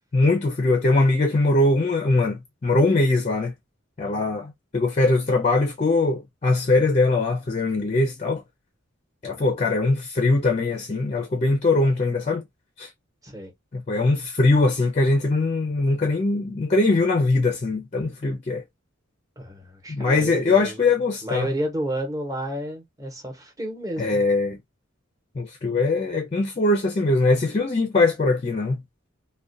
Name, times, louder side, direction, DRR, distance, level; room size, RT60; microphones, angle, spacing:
voice 1, 0.1-3.5 4.0-8.4 9.2-12.4 12.8-12.9 13.7-18.6 19.9-21.5 24.0-24.6 25.4-28.8, left 2 dB, 35° left, 0.4 m, -21 dB
voice 2, 19.4-20.9 21.2-24.2, right 1 dB, 15° right, 0.9 m, -31 dB
2.3 x 2.2 x 2.5 m
head